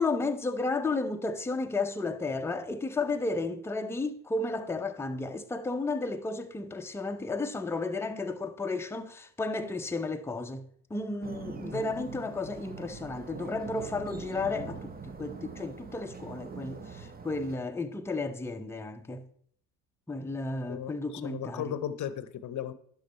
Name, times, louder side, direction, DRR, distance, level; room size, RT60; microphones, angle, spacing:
voice 1, 0.0-10.6 10.9-19.3 20.1-21.7, left 3 dB, 5° left, 0.6 m, -33 dB
sound 1, 11.2-17.6, right 5 dB, 20° right, 0.9 m, -42 dB
voice 2, 20.7-22.7, left 10 dB, 45° left, 0.8 m, -36 dB
11.0 x 3.9 x 4.4 m
hypercardioid pair, 60°, 42 cm